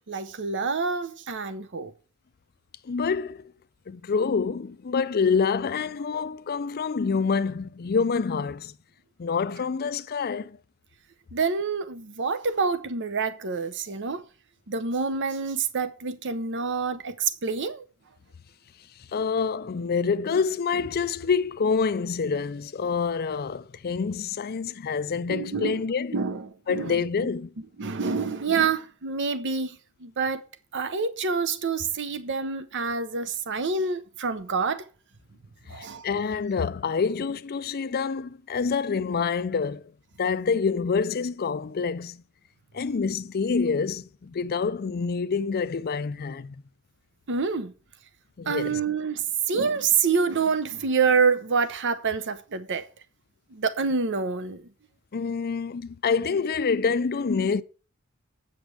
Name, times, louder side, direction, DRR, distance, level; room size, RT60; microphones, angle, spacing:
voice 1, 0.1-1.9 11.3-14.2 14.7-17.8 25.3-25.8 26.1-27.0 27.8-30.4 30.7-34.8 35.7-36.0 47.3-47.7 48.5-52.9 53.5-54.6, right 5 dB, 55° right, 0.7 m, -27 dB
voice 2, 2.9-3.5 3.9-8.7 9.2-10.6 19.1-26.2 26.7-27.5 35.8-39.9 40.2-42.2 42.7-46.6 48.4-48.8 55.1-57.6, left 5 dB, 45° left, 0.5 m, -27 dB
8.3 x 5.1 x 7.6 m
head